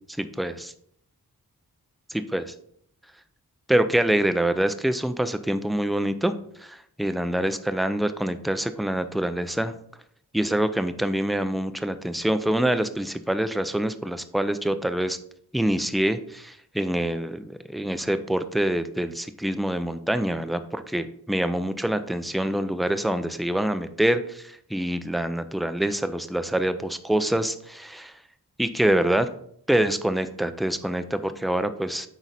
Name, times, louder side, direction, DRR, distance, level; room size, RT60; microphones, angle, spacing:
voice 1, 0.2-0.7 2.1-2.4 3.7-6.3 6.6-9.7 10.3-15.2 15.5-28.1 28.6-29.3 29.7-32.1, right 1 dB, ahead, 11 dB, 0.5 m, -25 dB
8.0 x 4.7 x 4.2 m, 0.68 s
wide cardioid pair, 65°, 37 cm